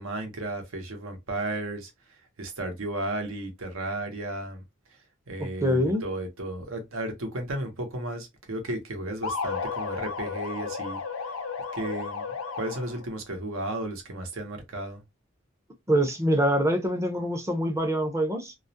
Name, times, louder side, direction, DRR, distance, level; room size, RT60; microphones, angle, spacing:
voice 1, 0.0-1.9 2.4-4.6 5.3-11.0 11.7-12.2 12.6-15.0, right 1 dB, 80° right, 0.8 m, -34 dB
voice 2, 5.4-6.0 15.9-18.6, equal, 15° right, 0.5 m, -25 dB
sound 1, 9.2-13.1, left 5 dB, 80° left, 0.5 m, -33 dB
2.3 x 2.0 x 2.7 m
head